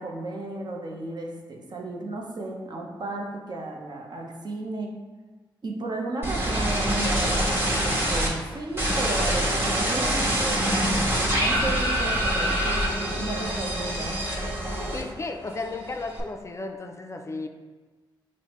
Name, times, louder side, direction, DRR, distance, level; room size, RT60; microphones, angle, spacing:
voice 1, 0.0-5.0 5.6-14.3, right 2 dB, 50° right, 0 dB, 0.7 m, -34 dB
sound 1, 6.2-8.3 8.8-15.3 15.6-16.2, right 1 dB, 25° right, 1.4 m, -25 dB
voice 2, 14.9-17.5, left 3 dB, 35° left, 5 dB, 0.3 m, -34 dB
6.0 x 2.0 x 3.0 m, 1.3 s
cardioid pair, 55°, 9 cm